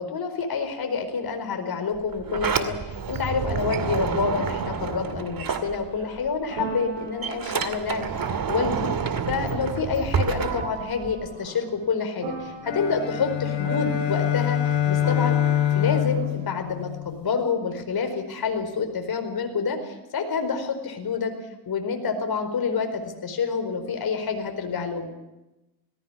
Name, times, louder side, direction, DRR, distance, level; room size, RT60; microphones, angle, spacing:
voice 1, 0.0-8.9 9.3-14.6 14.9-15.4 15.7-21.3 21.6-25.1, left 5 dB, 50° left, 6 dB, 4.7 m, -28 dB
Sliding door, 2.0-6.3 6.6-11.3, right 6 dB, 45° right, 2.4 m, -29 dB
sound 1, 5.6-9.8 10.3-11.9 12.2-13.3 13.6-16.6, right 6 dB, 70° right, 6.3 m, -39 dB
sound 2, 12.6-17.3, left 11 dB, 70° left, 2.6 m, -25 dB
18.5 x 16.0 x 9.9 m, 1.0 s
hypercardioid pair, 55°, 48 cm